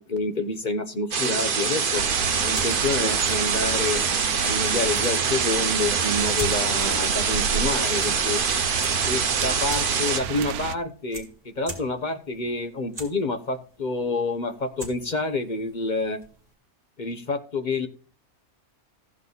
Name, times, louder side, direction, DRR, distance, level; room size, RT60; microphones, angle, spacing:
voice 1, 0.0-2.0 2.4-4.0 4.4-8.4 9.1-16.2 17.0-17.9, left 3 dB, 35° left, 7 dB, 1.0 m, -28 dB
sound 1, 1.1-10.2, right 5 dB, 40° right, 0.9 m, -25 dB
sound 2, 2.0-10.8, right 8 dB, 80° right, 1.2 m, -31 dB
sound 3, 2.2-16.5, right 1 dB, 25° right, 2.6 m, -44 dB
14.5 x 7.5 x 4.1 m, 0.41 s
omnidirectional pair, 1.6 m